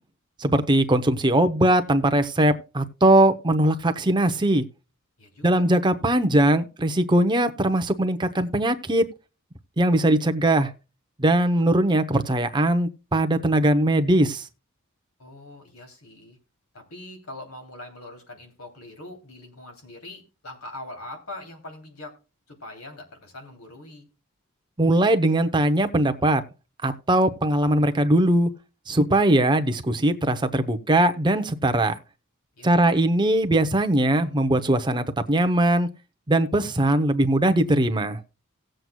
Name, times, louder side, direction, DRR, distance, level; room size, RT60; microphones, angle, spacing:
voice 1, 0.4-4.6 5.4-9.0 9.8-10.7 11.2-14.5 24.8-26.4 26.8-28.5 28.9-32.0 32.6-35.9 36.3-38.2, right 1 dB, 20° right, 0.8 m, -20 dB
voice 2, 5.2-5.6 15.2-16.4 16.7-22.1 22.5-24.1 32.6-32.9, left 2 dB, 85° left, 3.0 m, -42 dB
18.0 x 7.8 x 2.3 m
head